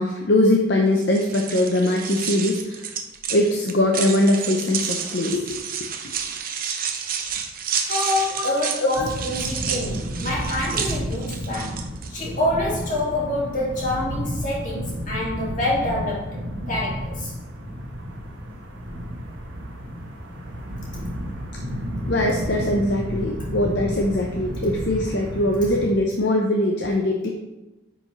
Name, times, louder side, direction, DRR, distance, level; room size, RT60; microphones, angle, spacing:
voice 1, 0.0-2.9 3.3-5.9 8.4-9.1 20.9-21.0 21.5-21.6 22.1-27.3, left 1 dB, 60° left, 0 dB, 0.7 m, -22 dB
sound 1, 1.0-12.1, right 7 dB, 45° right, 0.7 m, -30 dB
voice 2, 7.8-17.3, left 1 dB, 40° left, -5 dB, 2.4 m, -27 dB
sound 2, 8.9-25.9, equal, 80° right, 1.2 m, -32 dB
9.9 x 5.0 x 3.2 m, 1.0 s
head